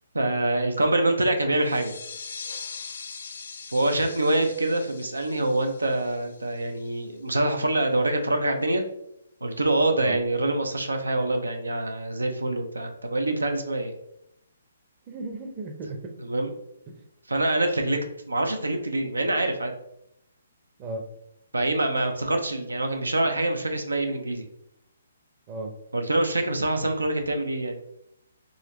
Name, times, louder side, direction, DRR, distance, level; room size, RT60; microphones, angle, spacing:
voice 1, 0.1-1.9 3.7-8.8 9.4-13.9 16.2-16.5 17.3-18.0 18.3-19.7 21.5-24.5 25.9-27.8, right 2 dB, 85° right, 5 dB, 0.5 m, -25 dB
sound 1, 1.6-6.9, left 5 dB, 65° left, 0.4 m, -41 dB
voice 2, 15.1-16.1 16.9-17.0 17.8-17.9 20.8-21.1 25.5-25.7, right 2 dB, 30° right, 4 dB, 0.6 m, -35 dB
3.9 x 2.9 x 3.1 m, 0.80 s
figure-of-eight pair, 135°, 0 cm